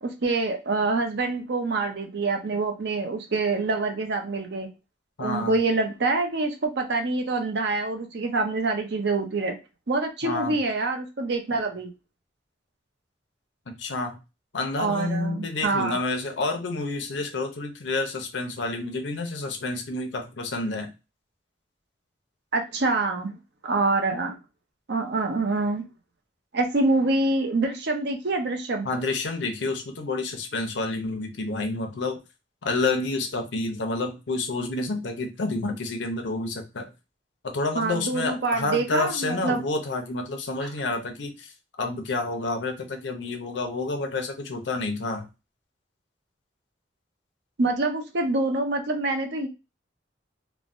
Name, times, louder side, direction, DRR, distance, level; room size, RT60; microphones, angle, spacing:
voice 1, 0.0-4.7 5.2-9.6 9.9-11.9 14.8-16.0 22.5-23.3 23.6-24.4 24.9-25.9 26.5-28.9 37.8-39.6 40.6-40.7 47.6-49.5, right 3 dB, 65° right, 4 dB, 0.6 m, -26 dB
voice 2, 5.2-5.5 10.2-10.5 13.7-14.2 14.5-20.9 28.8-32.2 32.6-36.9 37.4-41.5 41.8-45.2, left 3 dB, 85° left, 4 dB, 0.6 m, -29 dB
3.1 x 2.1 x 2.5 m, 0.27 s
head